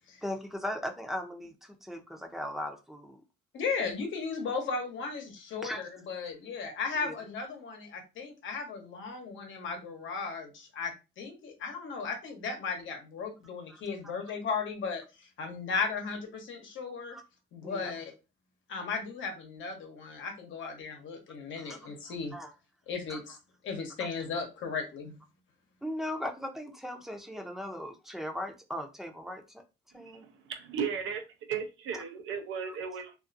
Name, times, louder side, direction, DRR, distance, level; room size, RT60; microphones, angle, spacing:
voice 1, 0.2-3.2 5.6-5.8 6.9-7.1 13.7-13.8 17.1-17.2 17.6-17.9 21.6-22.5 23.1-23.2 25.8-29.6 29.9-30.2 32.7-32.8, left 1 dB, ahead, 0.6 m, -38 dB
voice 2, 3.5-5.7 6.1-15.0 15.4-17.2 17.5-18.1 18.7-22.3 22.9-23.4 23.6-25.1, left 5 dB, 75° left, 0.9 m, -36 dB
voice 3, 29.9-31.2 31.5-33.1, right 6 dB, 85° right, 0.6 m, -35 dB
2.5 x 2.4 x 2.5 m
cardioid pair, 90°, 20 cm